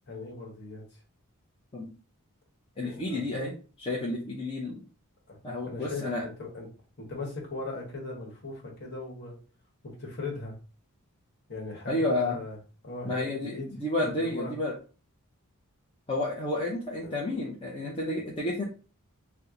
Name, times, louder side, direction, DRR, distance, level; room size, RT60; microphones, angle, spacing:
voice 1, 0.1-1.0 2.8-3.2 5.3-5.4 5.6-6.7 7.0-9.4 9.8-10.5 11.5-12.6 12.8-13.7 14.1-14.5 17.0-17.1, left 3 dB, 50° left, -2 dB, 1.3 m, -39 dB
voice 2, 2.8-4.8 5.4-6.2 11.9-12.4 13.0-14.7 16.1-18.6, left 1 dB, 25° left, -4 dB, 0.6 m, -31 dB
2.9 x 2.2 x 3.7 m, 0.36 s
head